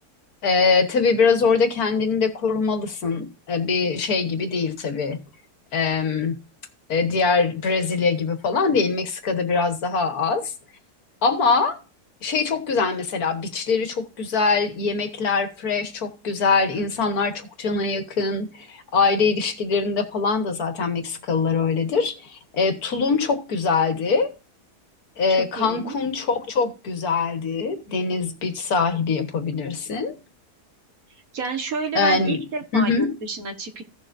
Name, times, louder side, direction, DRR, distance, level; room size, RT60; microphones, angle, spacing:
voice 1, 0.4-5.2 5.7-6.4 6.9-10.5 11.2-11.8 12.2-24.3 25.2-30.1 32.0-32.4 32.7-33.1, left 4 dB, 70° left, 1.8 m, -23 dB
voice 2, 25.6-26.0 31.3-33.8, right 4 dB, 60° right, 1.9 m, -30 dB
16.0 x 6.8 x 2.6 m
omnidirectional pair, 1.7 m